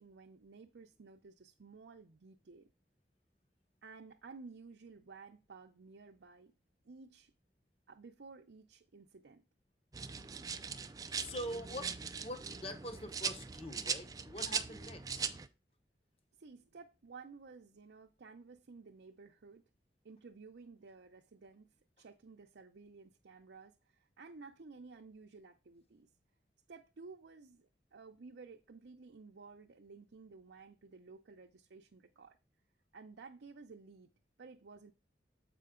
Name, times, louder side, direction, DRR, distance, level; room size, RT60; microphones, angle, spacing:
voice 1, 0.0-2.7 3.8-6.5 6.8-7.3 7.9-9.4 16.4-19.6 20.0-21.7 22.0-26.1 26.7-32.4 32.9-34.1 34.4-34.9, right 4 dB, 85° right, 0.6 m, -54 dB
sound 1, 9.9-15.5, right 6 dB, 20° right, 0.3 m, -40 dB
voice 2, 11.1-11.9 12.2-15.4, equal, 35° left, 1.0 m, -44 dB
7.6 x 5.0 x 3.7 m
head